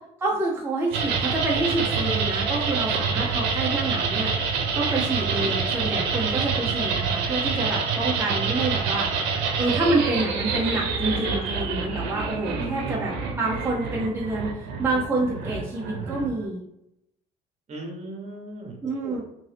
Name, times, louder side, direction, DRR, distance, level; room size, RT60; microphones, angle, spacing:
voice 1, 0.2-4.3 4.7-9.1 9.6-16.6 18.8-19.2, right 2 dB, 15° right, -4 dB, 0.6 m, -27 dB
sound 1, 0.9-16.5, right 5 dB, 90° right, 0.6 m, -27 dB
voice 2, 12.6-13.1 17.7-18.8 19.0-19.2, right 2 dB, 45° right, 0 dB, 1.0 m, -36 dB
2.7 x 2.6 x 3.3 m, 0.80 s
cardioid pair, 110°, 17 cm